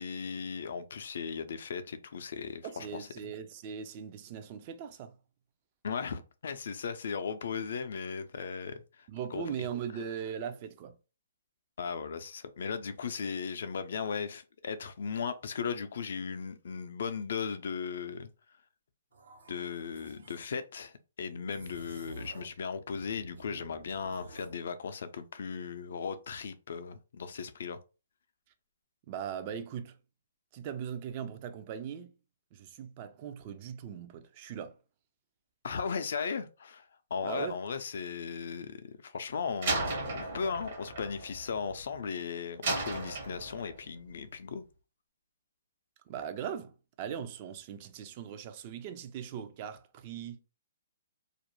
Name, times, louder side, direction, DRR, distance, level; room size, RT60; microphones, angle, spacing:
voice 1, 0.0-3.1 5.8-8.8 9.3-9.4 11.8-18.3 19.5-27.8 35.6-36.8 37.1-44.6, left 6 dB, 65° left, 0.4 m, -37 dB
voice 2, 2.6-5.2 9.1-10.9 29.1-30.0 30.5-32.1 32.5-34.7 37.2-37.6 46.1-50.4, right 8 dB, 35° right, 0.4 m, -39 dB
sound 1, 19.1-20.6 21.5-22.6 22.9-24.6, right 2 dB, 85° right, 0.8 m, -51 dB
Slam, 39.6-42.0 42.6-43.9, right 3 dB, 55° right, 0.9 m, -35 dB
2.4 x 2.1 x 3.0 m
hypercardioid pair, 145°, 0 cm